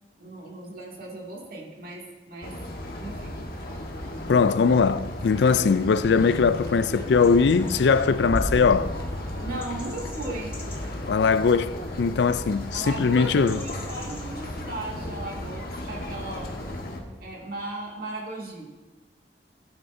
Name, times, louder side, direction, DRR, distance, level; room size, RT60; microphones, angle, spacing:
voice 1, 0.2-2.5 3.0-3.3 3.6-3.8 9.4-10.5 12.7-16.5 17.2-18.7, right 2 dB, 55° right, 2.4 m, -37 dB
sound 1, 2.4-17.0, left 1 dB, 60° left, 1.4 m, -34 dB
voice 2, 4.3-8.9 11.1-13.6, left 5 dB, 75° left, 0.4 m, -21 dB
sound 2, 6.0-16.8, left 1 dB, 15° left, 1.4 m, -44 dB
16.0 x 8.8 x 2.7 m
head